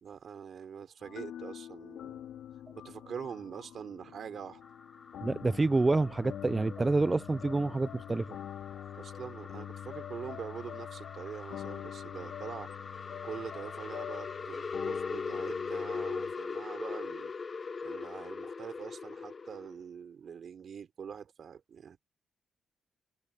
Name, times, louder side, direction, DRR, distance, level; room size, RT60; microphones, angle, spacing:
voice 1, 0.0-2.2 2.7-4.6 8.9-17.3 17.8-22.0, right 7 dB, 60° right, 4.0 m, -44 dB
sound 1, 1.0-16.3, left 10 dB, 80° left, 4.0 m, -45 dB
sound 2, 4.6-19.8, left 5 dB, 40° left, 0.8 m, -41 dB
voice 2, 5.2-8.3, right 3 dB, 25° right, 0.3 m, -28 dB
cardioid pair, 70°, 0 cm